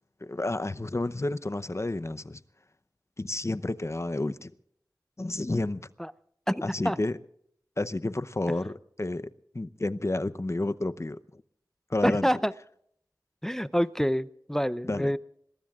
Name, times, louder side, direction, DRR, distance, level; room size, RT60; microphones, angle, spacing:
voice 1, 0.2-2.4 3.2-4.5 5.2-5.8 6.6-7.2 7.8-9.3 9.5-11.4 11.9-12.3 14.8-15.1, left 2 dB, 40° left, 0.7 m, -30 dB
voice 2, 6.5-7.0 12.0-12.5 13.4-15.2, equal, 5° left, 0.5 m, -27 dB
26.0 x 20.5 x 2.4 m
wide cardioid pair, 55°, 8 cm